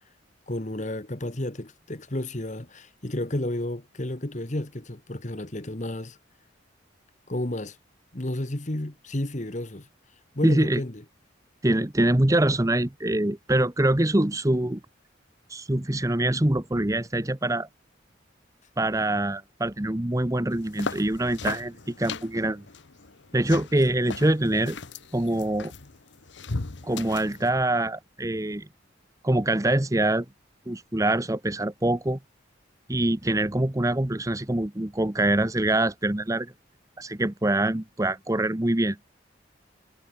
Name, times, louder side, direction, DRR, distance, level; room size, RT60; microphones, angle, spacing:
voice 1, 0.5-6.2 7.3-7.8 8.1-9.9 10.3-11.0, left 1 dB, 40° left, 1.5 m, -32 dB
voice 2, 10.4-10.8 11.6-14.8 15.5-17.7 18.8-22.6 23.3-24.8 25.1-25.7 26.8-28.7 29.2-30.3 30.7-32.2 32.9-36.5 37.0-39.0, right 1 dB, 15° right, 0.9 m, -24 dB
sound 1, 20.5-27.5, left 4 dB, 70° left, 1.1 m, -37 dB
head